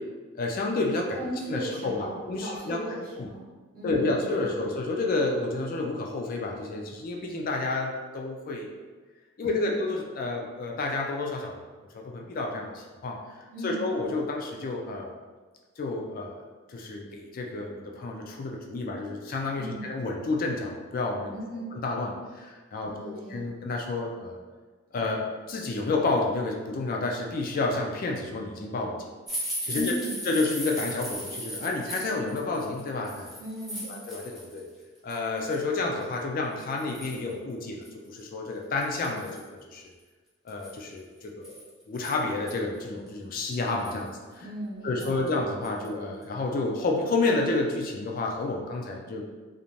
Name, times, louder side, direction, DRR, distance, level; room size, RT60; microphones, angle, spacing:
voice 1, 0.4-1.2 1.5-2.8 3.2-3.3 3.8-8.7 9.4-11.6 11.9-13.2 13.6-15.1 15.8-16.4 16.7-21.4 21.7-22.1 22.4-24.3 24.9-28.9 29.6-30.0 30.2-33.3 33.8-34.6 35.0-39.9 40.5-44.4 44.8-49.2, left 3 dB, 45° left, 0 dB, 0.3 m, -30 dB
voice 2, 1.1-3.5 3.7-4.7 9.4-9.8 13.5-13.9 19.5-19.9 21.3-21.7 22.8-23.5 29.7-30.2 33.4-33.9 44.4-45.4, equal, 50° right, -6 dB, 0.8 m, -37 dB
sound 1, 29.3-34.6 35.0-35.6 36.1-36.2 36.6-37.3 37.8-37.9 38.2-38.3 38.8-39.5 40.5-42.5 43.1-43.2 43.5-44.1 45.0-45.3 45.6-45.9 46.2-46.3, equal, ahead, 0.6 m, -37 dB
2.5 x 2.1 x 3.0 m, 1.3 s
head